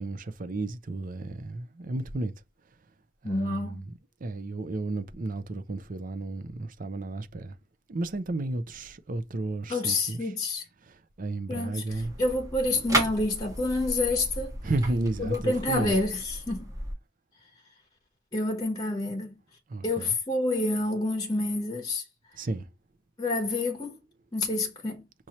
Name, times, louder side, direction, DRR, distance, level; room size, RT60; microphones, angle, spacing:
voice 1, 0.0-2.3 3.2-3.9 4.2-7.6 7.9-10.3 10.9-12.1 14.6-15.9 19.7-20.1 22.4-22.7, right 2 dB, 45° right, 0.6 m, -33 dB
voice 2, 3.2-3.8 9.7-10.6 11.5-14.6 15.2-16.7 18.3-19.3 19.8-22.0 23.2-24.0 24.3-25.1, left 2 dB, 20° left, 1.1 m, -28 dB
sound 1, 11.9-16.9, right 1 dB, 20° right, 1.5 m, -34 dB
6.1 x 2.8 x 3.0 m
head